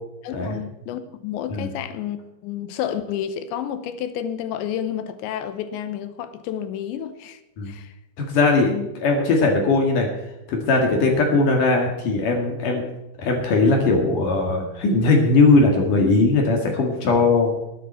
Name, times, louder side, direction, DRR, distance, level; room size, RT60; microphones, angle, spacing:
voice 1, 0.2-7.4 7.7-7.9 8.7-8.9, left 10 dB, 80° left, 3.1 m, -30 dB
voice 2, 8.2-10.1 10.5-12.8 13.2-17.5, left 3 dB, 55° left, 3.0 m, -19 dB
20.5 x 9.5 x 4.4 m
omnidirectional pair, 5.3 m